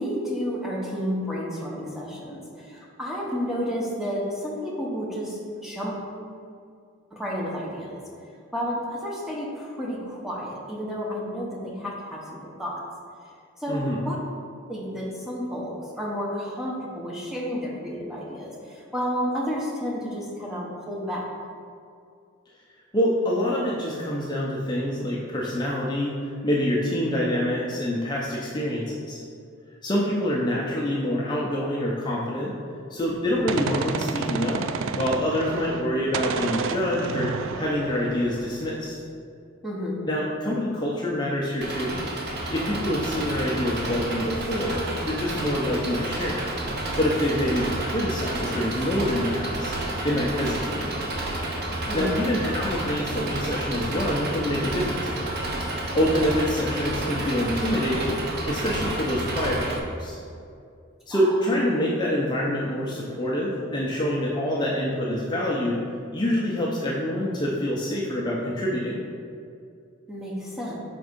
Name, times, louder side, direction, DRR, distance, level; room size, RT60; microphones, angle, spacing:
voice 1, 0.0-6.1 7.1-8.0 8.5-12.8 13.6-14.2 14.7-21.2 39.6-40.0 51.9-52.2 61.1-61.5 70.1-70.7, equal, ahead, -4 dB, 0.9 m, -31 dB
voice 2, 13.7-14.0 22.9-29.2 29.8-32.5 32.9-34.6 34.9-38.9 40.1-42.0 42.5-46.5 47.0-50.8 51.9-55.3 55.9-58.2 58.5-60.2 61.1-65.8 66.1-69.0, left 1 dB, 20° left, -5 dB, 0.5 m, -26 dB
Gunshot gunfire, 33.0-35.9 36.1-38.9, right 5 dB, 65° right, 0.3 m, -31 dB
Engine, 41.6-59.8, right 1 dB, 50° right, 0.7 m, -30 dB
5.2 x 3.5 x 5.1 m, 2.4 s
head